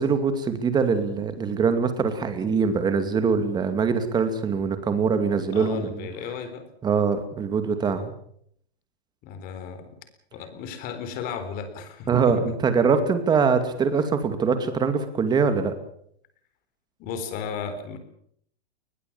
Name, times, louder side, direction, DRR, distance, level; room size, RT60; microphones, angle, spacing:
voice 1, 0.0-5.9 6.8-8.1 12.1-15.7, right 5 dB, 15° right, 9 dB, 2.4 m, -23 dB
voice 2, 5.5-6.6 9.2-9.8 10.3-12.4 17.0-18.0, left 6 dB, 25° left, 10 dB, 3.8 m, -34 dB
21.5 x 21.0 x 7.3 m, 0.67 s
hypercardioid pair, 155°, 32 cm